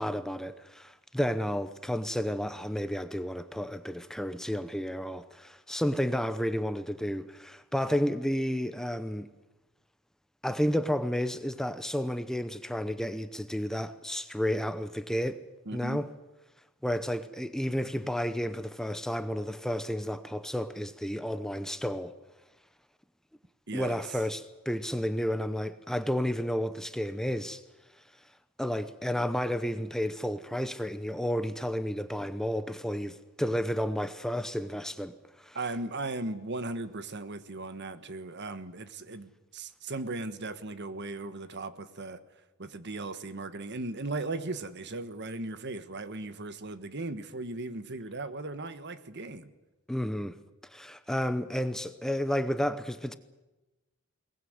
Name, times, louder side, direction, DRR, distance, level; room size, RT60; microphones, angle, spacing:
voice 1, 0.0-9.3 10.4-15.4 15.7-16.1 16.8-22.1 23.7-27.6 28.6-35.6 49.9-50.4 50.7-53.2, equal, ahead, 0.7 m, -31 dB
voice 2, 15.7-16.0 23.7-24.0 35.5-42.2 42.6-49.5, right 2 dB, 55° right, 1.4 m, -37 dB
22.0 x 19.5 x 9.5 m
head